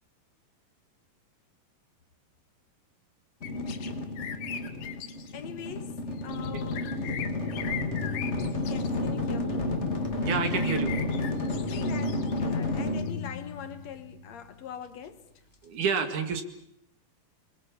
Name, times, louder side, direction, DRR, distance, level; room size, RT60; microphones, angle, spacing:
sound 1, 3.4-3.9 4.2-5.3 6.2-9.1 10.5-13.1, left 9 dB, 85° left, 3.4 m, -40 dB
sound 2, 3.4-14.4, left 2 dB, 30° left, 1.5 m, -31 dB
voice 1, 5.3-7.0 8.6-9.8 11.7-15.3, left 8 dB, 60° left, 2.1 m, -42 dB
voice 2, 10.2-11.0 15.6-16.4, right 6 dB, 60° right, 3.4 m, -29 dB
28.0 x 22.0 x 7.2 m
omnidirectional pair, 4.1 m